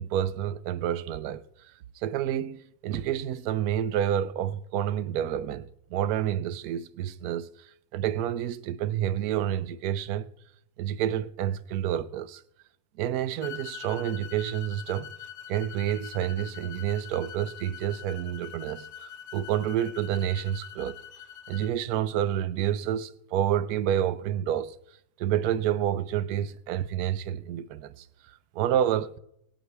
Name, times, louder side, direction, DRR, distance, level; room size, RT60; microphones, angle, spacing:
voice 1, 0.0-1.4 2.0-10.3 10.8-12.4 13.0-15.1 15.5-21.0 21.5-24.7 25.2-28.1 28.5-29.1, right 10 dB, 70° right, 1.1 m, -29 dB
sound 1, 13.4-21.7, left 9 dB, 85° left, 1.3 m, -44 dB
23.5 x 8.3 x 3.3 m
omnidirectional pair, 1.7 m